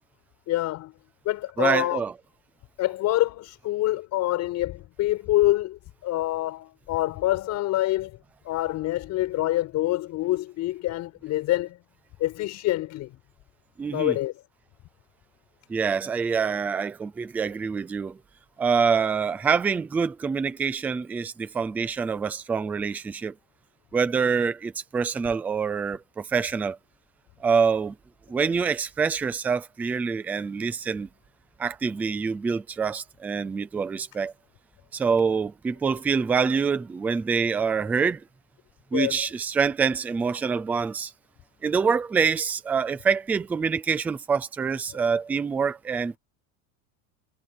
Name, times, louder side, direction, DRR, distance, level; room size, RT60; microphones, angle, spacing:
voice 1, 0.5-0.9 1.2-2.0 2.8-8.2 8.4-11.8 12.2-13.1 13.9-14.3 38.9-39.1, left 16 dB, 35° left, 6.6 m, -26 dB
voice 2, 1.6-2.1 13.8-14.2 15.7-18.2 18.6-23.3 23.9-26.8 27.4-28.0 28.3-31.1 31.6-34.3 34.9-38.2 38.9-41.1 41.6-46.2, right 5 dB, 5° right, 0.3 m, -26 dB
cardioid pair, 170°, 45 cm